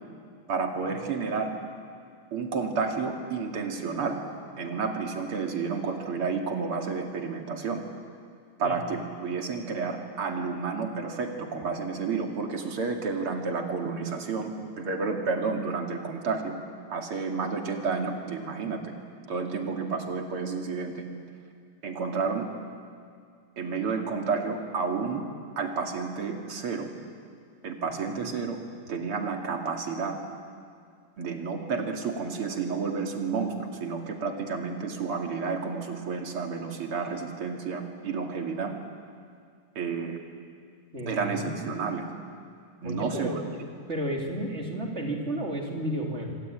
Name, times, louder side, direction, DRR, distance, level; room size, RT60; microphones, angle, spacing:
voice 1, 0.5-1.5 2.3-4.2 4.6-7.8 8.6-16.6 16.9-18.9 19.3-21.0 21.8-22.5 23.6-25.2 25.6-26.9 27.6-28.6 28.9-30.2 31.2-38.7 39.8-40.2 41.1-42.1 42.8-43.4, right 5 dB, 90° right, 3 dB, 3.3 m, -31 dB
voice 2, 40.9-41.7 42.8-43.4 43.9-46.4, right 1 dB, 30° right, 0 dB, 3.8 m, -32 dB
26.5 x 25.0 x 9.0 m, 2.3 s
omnidirectional pair, 2.4 m